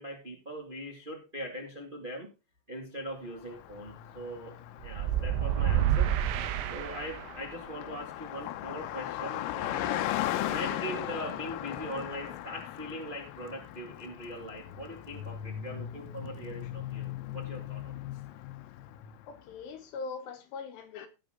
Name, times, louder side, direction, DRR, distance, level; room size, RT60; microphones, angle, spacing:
voice 1, 0.0-2.3 2.7-4.6 4.8-6.2 6.7-10.1 10.4-18.0, equal, 45° right, 0.6 m, -41 dB
Car passing by, 3.4-19.4, left 13 dB, 90° left, 3.6 m, -38 dB
sound 1, 4.8-7.5, right 10 dB, 85° right, 3.6 m, -28 dB
voice 2, 19.3-21.1, left 4 dB, 75° left, 2.8 m, -41 dB
18.5 x 6.2 x 3.8 m
omnidirectional pair, 5.8 m